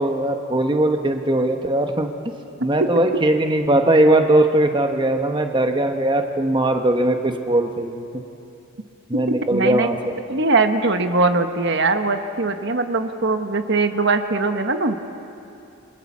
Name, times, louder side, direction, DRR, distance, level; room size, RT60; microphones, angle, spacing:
voice 1, 0.0-2.1 2.6-8.0 9.1-10.0, right 1 dB, 20° right, 5 dB, 1.1 m, -19 dB
voice 2, 9.5-9.9 10.3-15.0, right 3 dB, 55° right, 8 dB, 1.2 m, -21 dB
28.5 x 22.5 x 7.3 m, 2.7 s
head